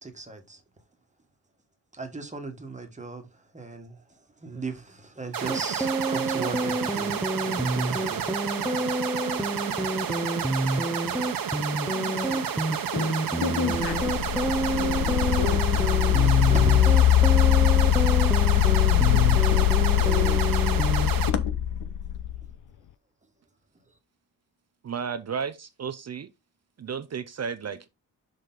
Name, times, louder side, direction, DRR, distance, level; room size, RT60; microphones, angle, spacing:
voice 1, 0.0-0.6 1.9-9.7 16.5-17.4, right 3 dB, 15° right, 1.4 m, -39 dB
sound 1, 5.3-21.3, right 8 dB, 55° right, 1.1 m, -31 dB
sound 2, 5.5-21.1, right 1 dB, ahead, 0.6 m, -29 dB
voice 2, 11.8-12.5 12.9-14.3 14.7-16.4 19.1-21.5, left 6 dB, 75° left, 1.4 m, -35 dB
sound 3, 13.7-22.5, left 13 dB, 50° left, 0.4 m, -22 dB
voice 3, 24.8-26.3 26.8-27.9, right 6 dB, 40° right, 0.6 m, -33 dB
6.4 x 5.1 x 3.9 m
wide cardioid pair, 140°, 41 cm